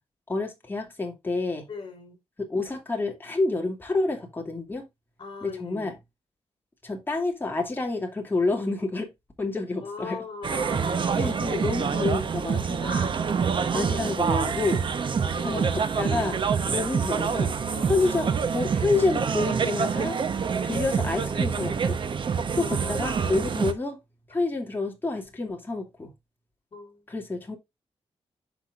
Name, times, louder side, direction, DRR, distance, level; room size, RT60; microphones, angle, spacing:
voice 1, 0.3-1.7 2.5-4.9 5.4-6.0 6.8-9.1 9.4-10.2 10.8-13.1 13.7-14.8 15.4-16.4 16.7-17.5 17.8-20.2 20.6-22.0 22.6-24.0 24.3-26.1 27.1-27.6, left 3 dB, 20° left, 2.6 m, -28 dB
voice 2, 1.7-2.2 5.2-5.9 9.8-11.0 15.2-16.8 17.2-18.1 22.6-23.0 26.7-27.1, left 4 dB, 45° left, 4.9 m, -41 dB
sound 1, 10.4-23.7, right 6 dB, 50° right, 1.0 m, -26 dB
10.0 x 5.9 x 2.5 m
wide cardioid pair, 150°, 11 cm